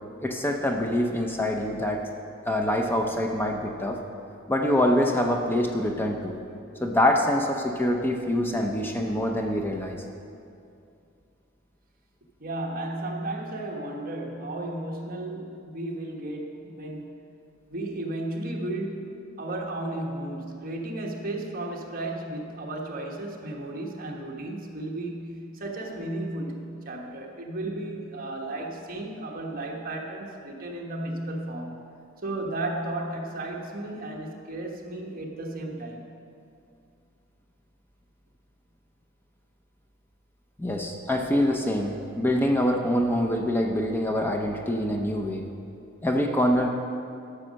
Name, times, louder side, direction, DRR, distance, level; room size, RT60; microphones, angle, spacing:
voice 1, 0.2-2.1 2.5-4.0 4.5-6.4 6.8-10.0 40.6-45.4 46.0-46.7, left 1 dB, 10° left, 2 dB, 0.6 m, -25 dB
voice 2, 12.4-17.2 17.7-31.8 32.2-36.1, right 1 dB, 45° right, 0 dB, 1.3 m, -34 dB
12.0 x 6.3 x 6.4 m, 2.5 s
head